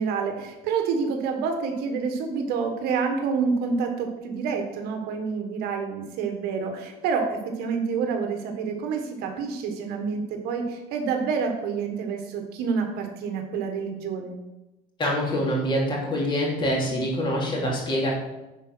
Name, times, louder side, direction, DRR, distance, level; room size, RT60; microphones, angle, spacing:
voice 1, 0.0-14.4, right 5 dB, 65° right, 4 dB, 1.5 m, -28 dB
voice 2, 15.0-18.2, equal, 25° left, -2 dB, 3.0 m, -25 dB
10.0 x 5.0 x 6.2 m, 1.0 s
cardioid pair, 155°, 17 cm